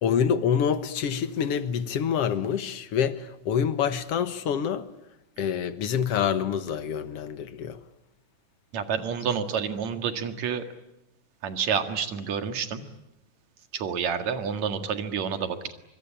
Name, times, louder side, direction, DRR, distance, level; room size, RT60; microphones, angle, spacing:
voice 1, 0.0-4.9 5.4-7.8, left 7 dB, 60° left, 2.1 m, -26 dB
voice 2, 8.7-10.6 11.4-12.8 13.7-15.7, right 7 dB, 65° right, 3.1 m, -29 dB
25.0 x 24.5 x 8.7 m
omnidirectional pair, 3.5 m